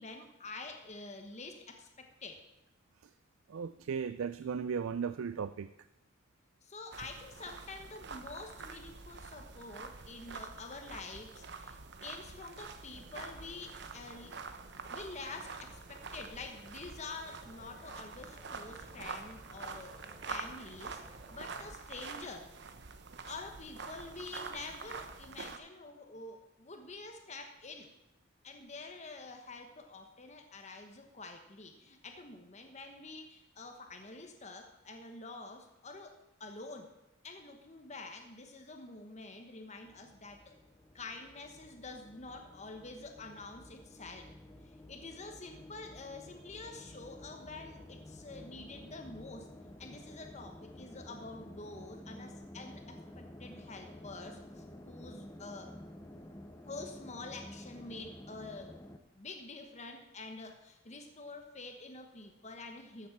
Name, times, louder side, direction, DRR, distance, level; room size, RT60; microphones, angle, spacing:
voice 1, 0.0-2.4 6.6-14.4 14.9-19.9 20.3-22.4 23.3-27.9 28.4-36.9 37.2-40.5 40.9-44.3 44.6-49.5 49.8-55.7 56.6-58.8 59.1-63.1, left 3 dB, 35° left, 4 dB, 1.1 m, -47 dB
voice 2, 3.5-5.7, right 6 dB, 85° right, 13 dB, 0.4 m, -36 dB
sound 1, 6.9-25.6, right 4 dB, 55° right, 0.9 m, -46 dB
sound 2, 12.9-21.7, equal, ahead, 3.7 m, -57 dB
sound 3, 39.8-59.0, left 1 dB, 15° left, 0.7 m, -51 dB
14.0 x 7.4 x 5.9 m, 0.90 s
head